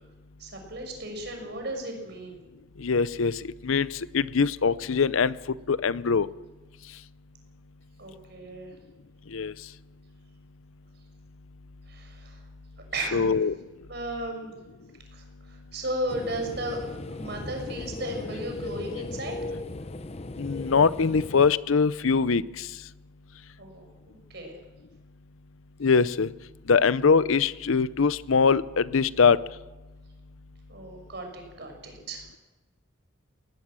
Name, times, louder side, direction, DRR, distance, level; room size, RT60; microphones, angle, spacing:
voice 1, 0.4-2.4 8.0-8.7 11.9-12.4 12.9-13.4 13.9-14.5 15.1-16.8 17.1-19.4 23.6-24.6 30.7-32.2, right 1 dB, 55° right, 3 dB, 5.8 m, -35 dB
voice 2, 2.8-5.4 5.7-6.3 9.3-9.5 13.1-13.6 20.4-22.7 25.8-26.3 26.7-29.4, left 5 dB, 80° left, 18 dB, 0.6 m, -22 dB
sound 1, 16.1-21.5, left 2 dB, 30° left, 0.7 m, -36 dB
19.5 x 18.5 x 7.6 m, 1.2 s
head